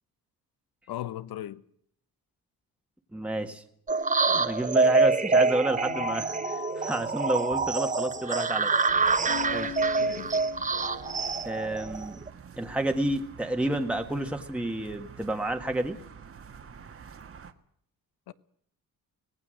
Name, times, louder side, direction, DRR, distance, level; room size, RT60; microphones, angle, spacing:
voice 1, 0.9-1.6 10.0-10.4 18.3-18.4, left 13 dB, 85° left, 1.1 m, -37 dB
voice 2, 3.1-3.6 4.3-8.7 9.2-9.7 11.4-12.2 12.6-16.0, right 1 dB, 5° right, 1.6 m, -30 dB
sound 1, 3.9-12.3, right 4 dB, 20° right, 0.9 m, -26 dB
sound 2, 5.8-11.4, left 7 dB, 50° left, 1.8 m, -41 dB
sound 3, 8.9-17.5, right 6 dB, 35° right, 1.6 m, -48 dB
25.0 x 18.5 x 6.5 m
cardioid pair, 150°, 36 cm